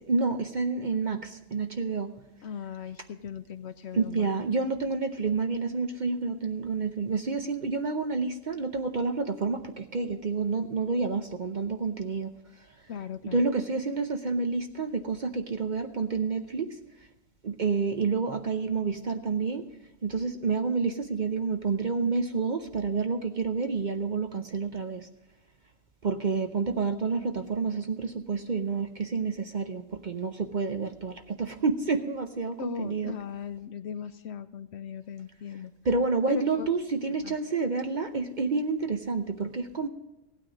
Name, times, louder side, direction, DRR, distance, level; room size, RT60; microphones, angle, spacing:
voice 1, 0.1-1.2 1.5-2.1 3.9-12.3 13.3-16.7 17.4-19.6 20.0-25.0 26.0-33.2 35.9-39.9, right 4 dB, 45° right, 7 dB, 0.7 m, -29 dB
voice 2, 2.4-4.5 12.9-13.5 32.6-35.7 36.3-36.7 37.1-37.4, left 8 dB, 65° left, 12 dB, 0.8 m, -38 dB
15.5 x 9.1 x 5.1 m, 0.94 s
omnidirectional pair, 1.3 m